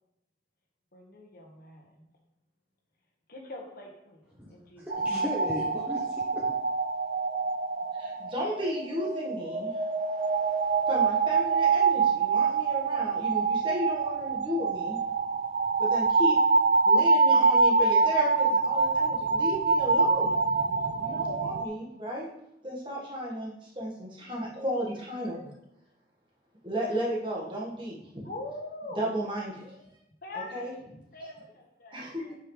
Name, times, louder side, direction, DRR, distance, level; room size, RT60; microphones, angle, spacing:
voice 1, 0.9-2.1 3.3-4.2 4.5-5.3 28.2-29.0 30.2-30.8 31.1-32.4, left 2 dB, 50° left, 0 dB, 1.4 m, -43 dB
voice 2, 4.4-6.6, left 1 dB, 10° right, -4 dB, 0.7 m, -37 dB
sound 1, 4.9-21.7, right 4 dB, 45° right, 0.4 m, -25 dB
voice 3, 8.0-9.8 10.9-15.0 15.8-16.3 16.8-20.3 21.0-22.3 22.6-25.5 26.6-28.2 29.0-29.8 30.3-30.7 31.9-32.4, equal, 25° right, -4 dB, 1.6 m, -34 dB
8.4 x 5.6 x 3.2 m, 0.82 s
head